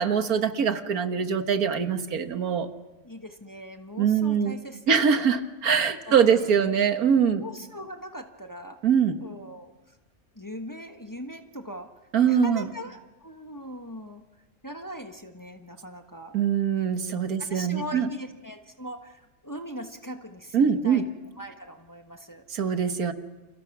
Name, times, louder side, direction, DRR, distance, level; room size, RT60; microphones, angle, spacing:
voice 1, 0.0-2.7 4.0-4.5 4.9-7.4 8.8-9.2 12.1-12.7 16.3-18.1 20.5-21.1 22.5-23.1, right 7 dB, 85° right, 8 dB, 1.9 m, -23 dB
voice 2, 3.0-5.4 6.1-6.7 7.3-8.8 9.2-10.0 10.3-11.9 12.2-14.2 14.6-16.4 17.4-21.0 21.4-22.5, equal, 15° left, 5 dB, 1.3 m, -40 dB
29.0 x 28.0 x 6.1 m, 1.1 s
omnidirectional pair, 1.5 m